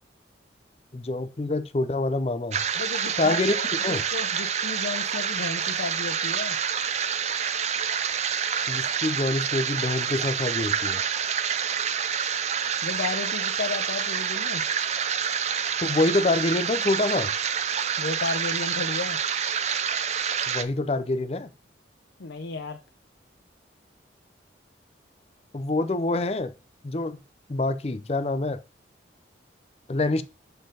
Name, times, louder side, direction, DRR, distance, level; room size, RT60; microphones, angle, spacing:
voice 1, 0.9-2.6 3.2-3.5 3.8-4.0 8.7-11.0 15.8-17.3 20.5-21.5 25.5-26.5 26.8-27.2 27.5-28.6 29.9-30.2, left 2 dB, 35° left, 0.5 m, -26 dB
sound 1, 2.5-20.6, right 7 dB, 35° right, 0.5 m, -27 dB
voice 2, 2.8-6.6 12.8-14.6 18.0-19.2 22.2-22.8, left 3 dB, 75° left, 0.6 m, -33 dB
6.5 x 4.4 x 3.8 m
head